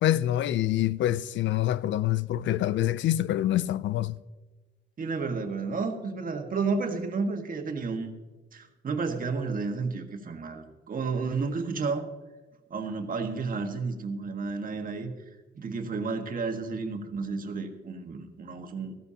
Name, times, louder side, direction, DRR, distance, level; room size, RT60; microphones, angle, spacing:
voice 1, 0.0-4.2, left 13 dB, 70° left, 0.5 m, -26 dB
voice 2, 5.0-8.1 8.5-12.1 12.7-15.1 15.5-18.9, right 4 dB, 45° right, 1.6 m, -31 dB
15.0 x 14.5 x 2.9 m
cardioid pair, 90°, 20 cm